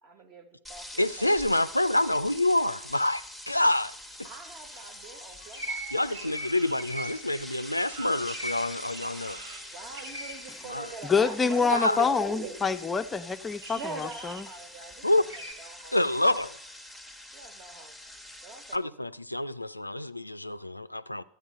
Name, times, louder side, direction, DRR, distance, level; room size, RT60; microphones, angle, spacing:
voice 1, 0.0-0.9 1.2-1.5 4.2-5.9 9.7-12.7 13.7-16.0 17.3-19.1, right 4 dB, 35° right, 1.4 m, -43 dB
sound 1, 0.6-18.8, left 1 dB, 5° right, 1.0 m, -45 dB
voice 2, 1.0-3.9 5.9-9.4 10.7-10.9 11.7-12.0 15.0-15.2 15.9-16.6 18.7-21.2, left 1 dB, 85° left, 0.3 m, -27 dB
sound 2, 3.5-3.6 3.8-11.7 12.1-12.3 12.8-13.1 13.6-15.5, right 1 dB, 60° right, 1.9 m, -42 dB
voice 3, 11.1-14.4, left 5 dB, 15° left, 0.4 m, -26 dB
12.5 x 8.0 x 5.3 m
figure-of-eight pair, 90°, 0 cm